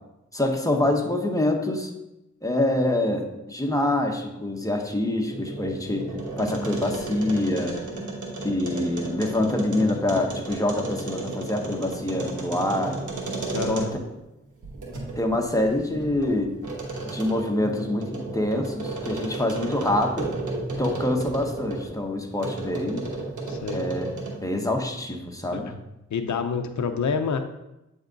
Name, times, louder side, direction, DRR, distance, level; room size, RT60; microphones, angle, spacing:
voice 1, 0.3-1.9 2.4-6.1 6.4-7.8 8.4-13.0 13.6-13.9 15.2-16.6 17.0-20.3 20.8-23.1 23.7-24.1 24.4-25.7, left 1 dB, 10° left, 2 dB, 1.2 m, -25 dB
sound 1, 5.2-14.2 14.6-21.9 22.4-24.5, right 2 dB, 90° right, 1.2 m, -33 dB
voice 2, 13.5-13.9 23.5-23.8 25.5-25.8 26.1-27.4, left 5 dB, 75° left, 7 dB, 0.7 m, -28 dB
8.0 x 3.6 x 3.9 m, 0.92 s
cardioid pair, 50°, 29 cm